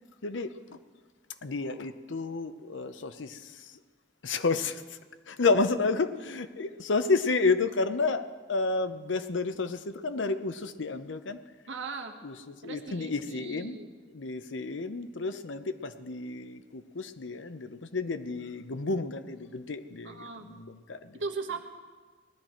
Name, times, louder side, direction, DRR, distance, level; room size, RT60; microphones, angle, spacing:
voice 1, 0.2-0.8 1.4-3.8 4.2-5.0 5.3-11.4 12.2-13.8 14.1-21.2, left 3 dB, 85° left, 11 dB, 0.8 m, -31 dB
voice 2, 11.7-12.1 12.6-13.9 20.0-20.5 21.1-21.6, right 4 dB, 85° right, 3 dB, 1.4 m, -38 dB
18.5 x 12.5 x 4.5 m, 1.5 s
head